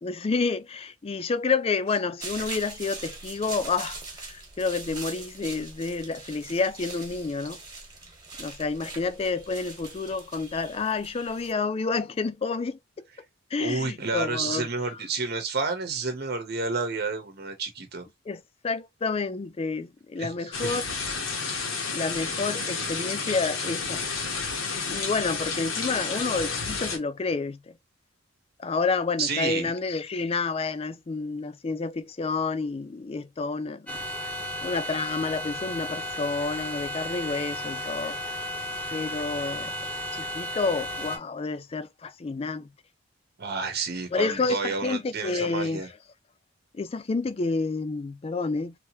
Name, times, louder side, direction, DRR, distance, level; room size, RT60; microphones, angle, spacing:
voice 1, 0.0-7.6 8.4-12.8 13.5-15.0 18.3-20.9 21.9-24.0 24.9-27.7 28.6-33.9 34.6-38.2 38.9-39.7 40.1-42.7 44.1-45.8 46.7-48.7, left 4 dB, 30° left, 0.4 m, -29 dB
sound 1, 2.2-11.5, right 3 dB, 20° right, 1.3 m, -41 dB
voice 2, 13.6-18.1 20.2-20.8 22.8-22.9 29.2-29.7 43.4-45.9, right 4 dB, 55° right, 1.0 m, -30 dB
sound 2, 20.5-27.0, left 4 dB, 80° left, 1.4 m, -31 dB
sound 3, 33.9-41.2, left 1 dB, 5° left, 0.9 m, -34 dB
3.3 x 2.9 x 3.0 m
head